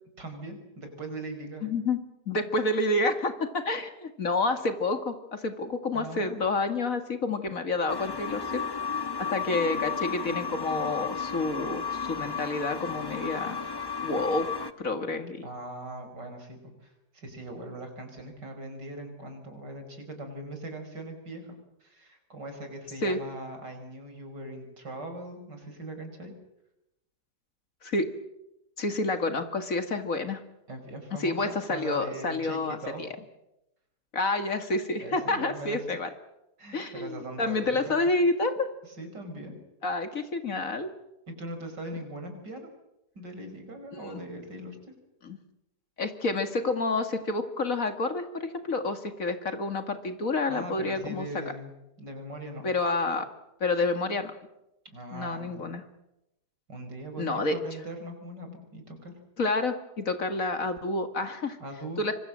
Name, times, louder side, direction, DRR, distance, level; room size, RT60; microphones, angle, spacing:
voice 1, 0.2-1.7 5.9-6.4 15.4-21.6 21.8-26.3 30.7-33.0 35.0-36.0 36.6-37.8 38.8-39.6 41.3-42.7 43.1-44.9 50.5-51.7 52.0-52.7 54.9-55.7 56.7-59.1 61.6-62.0, right 1 dB, 75° right, 6 dB, 5.7 m, -40 dB
voice 2, 1.6-2.0 2.3-8.6 9.2-13.6 14.0-15.5 23.0-23.2 27.8-28.1 28.8-30.4 31.2-33.1 34.1-36.1 36.7-38.7 39.8-40.9 44.0-44.1 45.2-45.4 46.0-51.5 52.6-53.3 53.6-54.3 55.1-55.8 57.2-57.6 59.4-61.6 62.0-62.1, left 2 dB, 50° left, 8 dB, 2.4 m, -29 dB
sound 1, 7.9-14.7, left 5 dB, 15° left, 0.9 m, -33 dB
25.5 x 25.5 x 7.6 m, 0.89 s
omnidirectional pair, 1.9 m